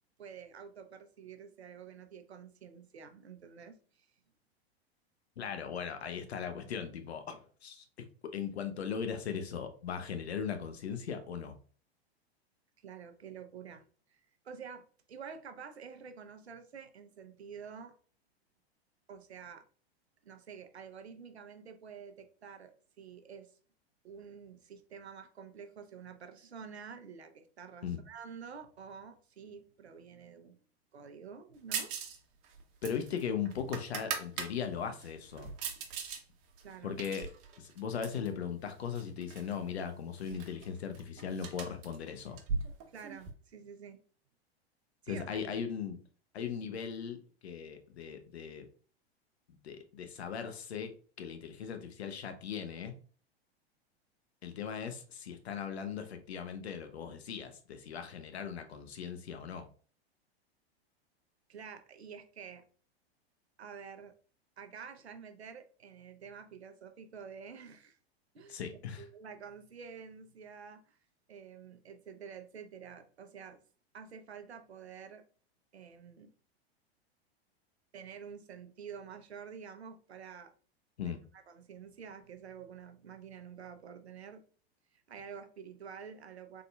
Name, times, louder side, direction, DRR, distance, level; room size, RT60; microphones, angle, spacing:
voice 1, 0.2-4.1 12.8-13.8 14.1-17.9 19.1-19.6 20.2-23.5 24.0-30.6 30.9-31.9 36.6-37.0 42.9-44.0 45.0-45.4 61.5-62.6 63.6-64.1 64.6-68.0 68.3-68.6 69.0-71.0 71.3-73.6 73.9-75.3 75.7-76.3 77.9-80.5 81.0-84.4 84.9-86.6, right 6 dB, 90° right, 0.7 m, -49 dB
voice 2, 5.4-7.8 8.3-11.5 27.8-28.0 32.8-35.5 36.8-37.3 37.6-42.4 45.1-46.0 46.3-48.7 49.6-52.9 54.4-59.7 68.5-69.0 81.0-81.2, left 7 dB, 80° left, 0.9 m, -38 dB
sound 1, 31.7-32.2 32.4-34.5 35.0-36.2 36.6-38.3 39.0-39.5 39.8-39.9 40.2-43.3, right 5 dB, 45° right, 1.0 m, -39 dB
3.8 x 3.6 x 2.3 m
hypercardioid pair, 100°, 32 cm